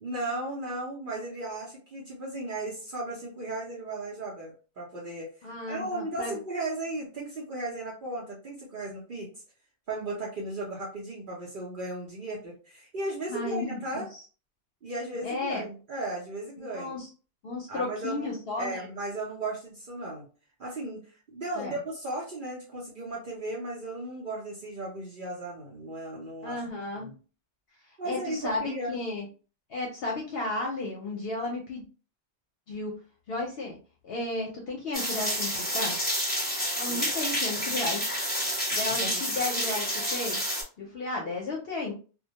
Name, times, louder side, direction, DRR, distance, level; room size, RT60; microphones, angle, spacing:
voice 1, 0.0-5.3 5.7-9.3 9.9-14.1 14.8-17.0 17.7-20.2 20.6-21.0 21.3-26.6 27.0-27.1 28.0-29.0 36.9-37.1 39.0-39.2, right 2 dB, 50° right, -4 dB, 0.7 m, -36 dB
voice 2, 5.4-6.4 13.3-14.2 15.2-15.6 16.7-17.1 17.4-18.9 21.5-21.8 26.4-27.1 28.0-29.3 29.7-31.8 32.7-32.9 33.3-33.8 34.0-36.0 36.8-38.1 38.7-40.4 40.8-41.9, left 2 dB, 65° left, -1 dB, 0.7 m, -33 dB
sound 1, 34.9-40.6, equal, 10° left, 1.1 m, -29 dB
2.2 x 2.1 x 2.7 m, 0.37 s
omnidirectional pair, 1.2 m